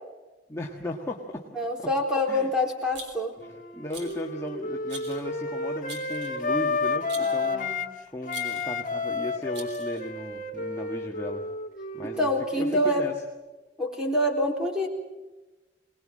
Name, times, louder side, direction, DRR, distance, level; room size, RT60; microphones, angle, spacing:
voice 1, 0.5-1.4 1.8-1.9 2.3-2.5 3.4-7.7 8.1-11.4 11.9-13.1, left 1 dB, 15° left, -1 dB, 1.6 m, -36 dB
voice 2, 1.5-3.3 7.2-7.8 12.2-13.1 13.8-14.9, left 1 dB, 5° right, 1 dB, 4.1 m, -26 dB
Rattle, 2.9-3.4 3.9-4.3 4.9-5.3 5.9-6.4 7.1-7.5 8.3-8.8 9.5-10.1, right 3 dB, 60° right, 3.6 m, -43 dB
Wind instrument woodwind instrument, 3.4-7.9 8.2-12.7, left 3 dB, 45° left, 1.4 m, -31 dB
23.5 x 20.0 x 7.7 m, 1.1 s
head